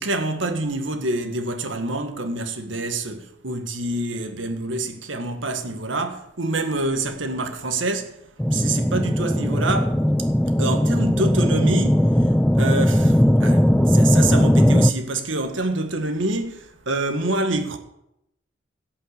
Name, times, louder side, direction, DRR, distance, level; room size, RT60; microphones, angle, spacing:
voice 1, 0.0-8.2 8.5-10.3 10.6-12.3 12.6-17.8, right 2 dB, 80° right, 1.6 m, -26 dB
sound 1, 8.4-14.9, equal, 5° left, 0.4 m, -18 dB
17.0 x 5.8 x 8.3 m
head